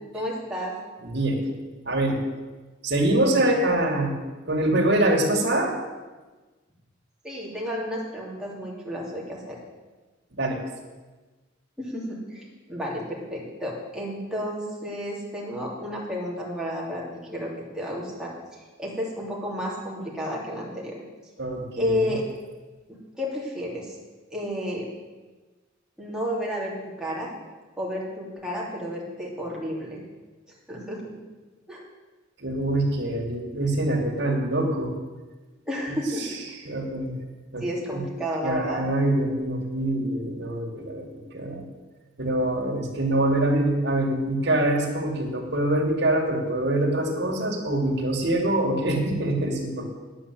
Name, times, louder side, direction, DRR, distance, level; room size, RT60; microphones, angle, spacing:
voice 1, 0.1-0.7 7.2-9.6 11.8-21.0 21.8-22.2 22.9-24.0 24.3-24.9 26.0-27.3 27.8-30.0 30.5-31.2 31.7-31.8 35.6-36.3 37.6-38.9, equal, 5° right, -4 dB, 2.9 m, -31 dB
voice 2, 1.0-1.5 1.8-2.2 2.8-4.2 4.5-5.7 10.3-10.6 21.4-22.0 32.4-34.9 36.7-37.1 37.5-37.6 37.9-38.0 38.4-41.7 42.2-49.9, right 1 dB, 60° right, -1 dB, 2.5 m, -24 dB
9.7 x 8.6 x 7.8 m, 1.3 s
head